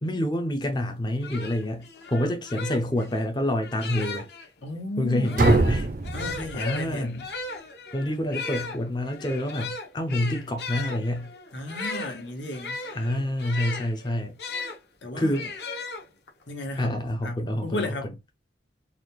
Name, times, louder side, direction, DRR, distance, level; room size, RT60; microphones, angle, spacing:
voice 1, 0.0-4.3 5.0-5.9 6.5-7.2 7.9-11.3 12.9-14.4 15.2-15.5 16.8-18.1, left 1 dB, 25° left, 0.5 m, -27 dB
sound 1, 0.8-0.9 1.2-4.5 5.2-14.8 15.3-16.4, left 4 dB, 60° left, 0.9 m, -36 dB
voice 2, 4.6-5.4 6.1-7.3 11.5-12.8 15.0-15.4 16.5-17.0 17.2-18.2, left 1 dB, 80° left, 1.3 m, -34 dB
sound 2, 5.4-7.2, right 2 dB, 45° right, 0.4 m, -24 dB
4.0 x 2.4 x 3.0 m
head